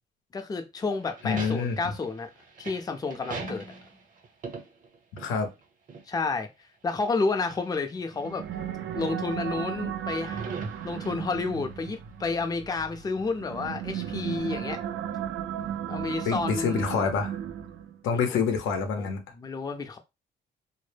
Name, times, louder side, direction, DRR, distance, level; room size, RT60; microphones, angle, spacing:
voice 1, 0.3-2.3 2.6-3.7 6.1-6.5 6.8-8.4 8.9-10.5 10.8-14.8 15.9-16.8 18.1-18.3 19.0-19.1 19.4-20.0, left 3 dB, 20° left, 0.4 m, -30 dB
sound 1, 0.8-5.6 5.9-6.0 7.0-7.8 8.5-8.6 10.0-11.5, right 4 dB, 40° right, 0.7 m, -40 dB
voice 2, 1.2-1.8 5.2-5.5 16.2-17.4 18.0-19.2, left 5 dB, 90° left, 0.6 m, -27 dB
sound 2, 8.1-18.0, right 9 dB, 70° right, 0.4 m, -35 dB
2.0 x 2.0 x 3.2 m
cardioid pair, 90°, 20 cm